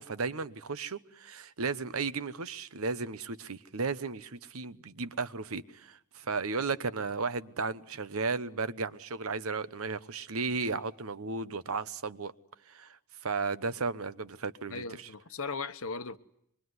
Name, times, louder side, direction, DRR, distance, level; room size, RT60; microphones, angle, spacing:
voice 1, 0.0-12.3 12.7-15.1, right 4 dB, 70° right, 1.0 m, -34 dB
voice 2, 14.7-16.2, left 4 dB, 65° left, 1.1 m, -37 dB
25.5 x 22.5 x 9.6 m
head